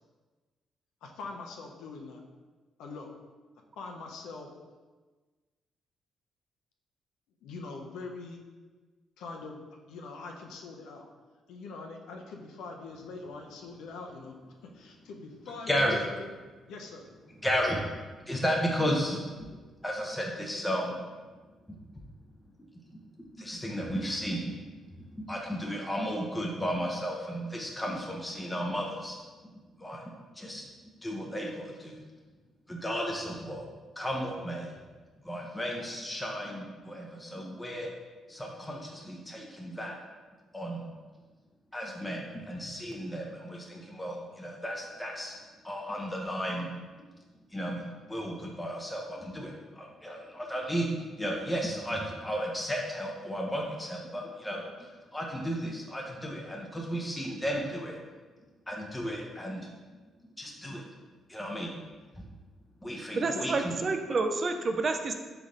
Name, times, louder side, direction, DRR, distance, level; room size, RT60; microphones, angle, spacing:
voice 1, 1.0-2.2 2.8-3.1 3.8-4.5 7.4-8.4 9.2-9.6 9.9-11.0 11.5-14.3 14.7-16.3 16.7-17.1 63.2-63.5, left 3 dB, 85° left, 1 dB, 0.6 m, -43 dB
voice 2, 15.7-16.0 17.4-19.5 19.8-21.0 23.4-24.6 24.9-29.2 29.8-30.7 31.0-32.0 32.7-33.7 34.0-34.7 35.2-37.9 38.3-39.9 40.5-40.8 41.7-45.3 45.6-46.7 47.5-50.9 51.2-57.9 58.7-59.6 60.4-60.8 61.3-61.7 62.2-62.3 62.8-63.7, equal, 10° left, -1 dB, 0.6 m, -34 dB
voice 3, 63.2-65.1, right 3 dB, 40° right, 6 dB, 0.4 m, -29 dB
3.9 x 3.3 x 3.7 m, 1.3 s
cardioid pair, 90°, 0 cm